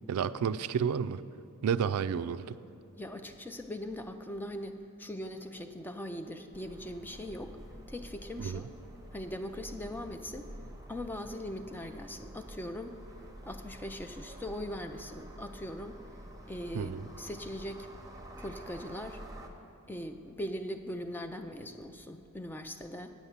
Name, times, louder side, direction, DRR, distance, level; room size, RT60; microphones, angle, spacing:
voice 1, 0.1-1.2 1.6-2.6 8.4-8.6 16.7-17.0, right 7 dB, 85° right, 14 dB, 0.3 m, -31 dB
voice 2, 3.0-7.6 7.9-8.7 9.1-10.5 10.9-13.0 13.4-16.0 16.4-16.9 17.2-17.9 18.4-19.2 19.9-23.1, left 1 dB, 10° left, 7 dB, 0.4 m, -40 dB
sound 1, 6.5-19.5, right 1 dB, 15° right, 0.8 m, -49 dB
9.0 x 8.0 x 7.2 m, 2.7 s
head